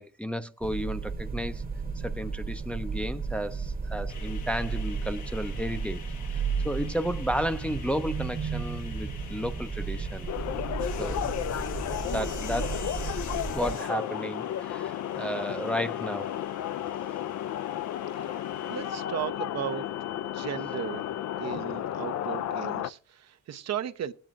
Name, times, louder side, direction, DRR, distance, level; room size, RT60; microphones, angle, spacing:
voice 1, 0.0-1.6 2.0-6.0 6.6-10.3 11.0-11.3 12.1-12.9 13.5-16.3, equal, 5° left, 0.6 m, -33 dB
sound 1, 0.6-13.8, right 5 dB, 30° right, 1.1 m, -34 dB
sound 2, 4.1-19.1, left 6 dB, 75° left, 1.4 m, -47 dB
sound 3, 10.3-22.9, left 11 dB, 60° left, 0.5 m, -33 dB
voice 2, 18.1-19.9 20.2-24.1, right 10 dB, 60° right, 0.8 m, -36 dB
19.0 x 9.0 x 2.5 m
cardioid pair, 90°, 30 cm